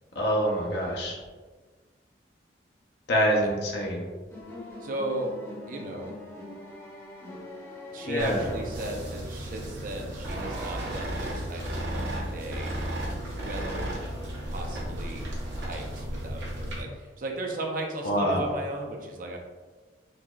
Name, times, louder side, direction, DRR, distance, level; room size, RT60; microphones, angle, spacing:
voice 1, 0.2-1.2 3.1-4.1 8.1-8.5 18.0-18.5, equal, 65° left, -2 dB, 0.6 m, -25 dB
sound 1, 4.3-9.2, left 1 dB, 15° left, 0.7 m, -43 dB
voice 2, 4.8-5.3 5.7-6.1 7.9-12.7 13.4-13.9 14.5-15.3 15.6-19.4, right 1 dB, 45° right, 1 dB, 0.5 m, -36 dB
sound 2, 8.2-16.8, equal, 85° right, 1.1 m, -36 dB
sound 3, 10.2-15.9, right 1 dB, 65° right, 0.9 m, -36 dB
4.0 x 2.9 x 2.3 m, 1.3 s
head